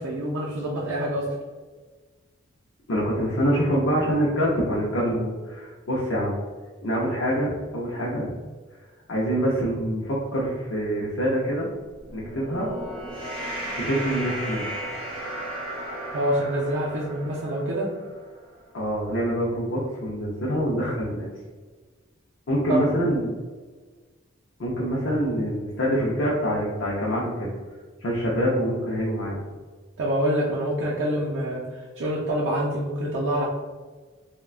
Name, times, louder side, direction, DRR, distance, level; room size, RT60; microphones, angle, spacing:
voice 1, 0.0-1.3 16.1-17.9 22.7-23.2 30.0-33.4, right 1 dB, 65° right, -6 dB, 0.5 m, -26 dB
voice 2, 2.9-6.4 6.8-8.3 9.1-11.7 12.1-12.7 13.8-14.7 18.7-21.3 22.5-23.3 24.6-27.5 28.0-29.4, equal, 65° left, -5 dB, 0.5 m, -25 dB
sound 1, 11.9-18.5, right 1 dB, 25° right, 0.9 m, -35 dB
3.5 x 2.2 x 2.4 m, 1.4 s
head